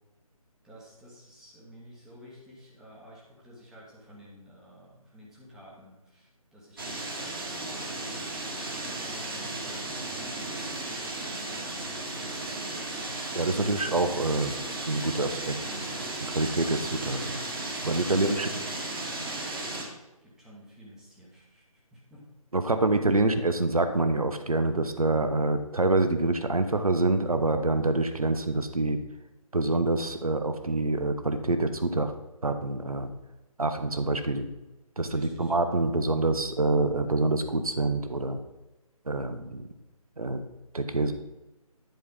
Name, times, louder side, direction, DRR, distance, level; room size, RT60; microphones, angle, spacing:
voice 1, 0.6-7.8 8.5-11.8 12.1-12.5 20.2-22.2 35.1-35.5, equal, 5° right, -5 dB, 1.2 m, -51 dB
sound 1, 6.8-19.8, right 2 dB, 40° right, 1.9 m, -35 dB
voice 2, 13.3-14.6 14.9-15.6 16.2-17.4 17.8-18.5 22.5-29.0 29.5-32.1 32.4-33.1 33.6-34.5 35.0-38.4 39.1-39.7 40.2-40.4 40.7-41.1, right 2 dB, 70° right, 8 dB, 1.0 m, -26 dB
10.5 x 4.7 x 5.5 m, 1.1 s
figure-of-eight pair, 150°, 19 cm